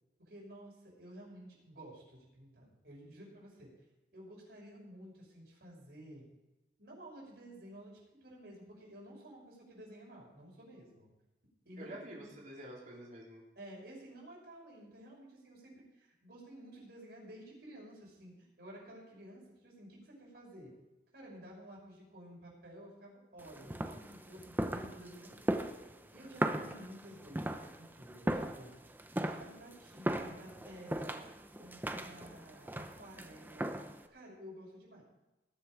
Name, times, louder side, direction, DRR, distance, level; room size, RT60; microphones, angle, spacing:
voice 1, 0.2-3.7 4.1-6.3 6.8-11.1 11.6-12.3 13.6-20.7 21.1-25.6 26.1-28.8 29.2-31.2 31.6-35.0, right 1 dB, 65° right, -3 dB, 6.0 m, -52 dB
voice 2, 11.8-13.4, right 1 dB, 45° right, -4 dB, 4.0 m, -48 dB
sound 1, 23.4-34.1, right 1 dB, 10° right, 0.8 m, -38 dB
20.0 x 7.8 x 4.9 m, 1.0 s
head